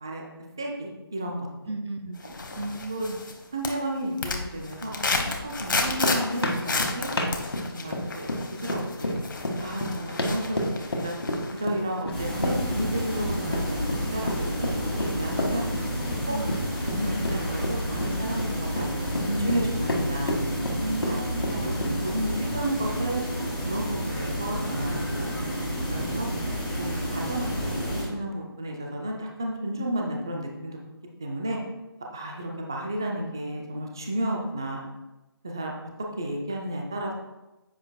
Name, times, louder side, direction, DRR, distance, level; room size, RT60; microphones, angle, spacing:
voice 1, 0.6-1.5 2.2-2.3 2.9-3.0 3.5-4.9 5.4-7.1 7.7-9.2 9.6-11.2 11.5-14.5 15.0-15.7 16.3-16.4 16.8-20.4 21.1-21.7 22.0-23.2 23.6-25.3 25.9-26.3 26.8-30.8 31.2-31.6 32.1-34.8 35.4-35.9 36.2-37.1, right 1 dB, 10° right, 0 dB, 0.3 m, -32 dB
voice 2, 1.7-2.2 2.6-3.2 16.3-16.7 20.8-21.7, right 2 dB, 85° right, 8 dB, 0.7 m, -35 dB
sound 1, 2.2-3.4 3.6-11.6 12.0-12.1, left 3 dB, 55° left, 1.1 m, -32 dB
sound 2, 5.9-22.1, left 1 dB, 75° left, 1.9 m, -31 dB
sound 3, 12.1-28.0, equal, 10° left, 1.9 m, -30 dB
10.0 x 7.6 x 2.3 m, 1.0 s
figure-of-eight pair, 165°, 13 cm